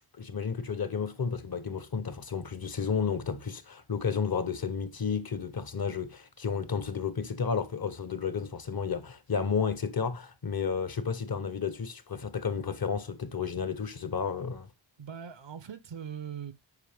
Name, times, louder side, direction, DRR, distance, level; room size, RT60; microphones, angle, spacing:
voice 1, 0.2-14.7, left 6 dB, 50° left, 0.8 m, -32 dB
voice 2, 15.0-16.5, right 8 dB, 65° right, 0.7 m, -40 dB
8.4 x 4.7 x 3.4 m
wide cardioid pair, 80°, 48 cm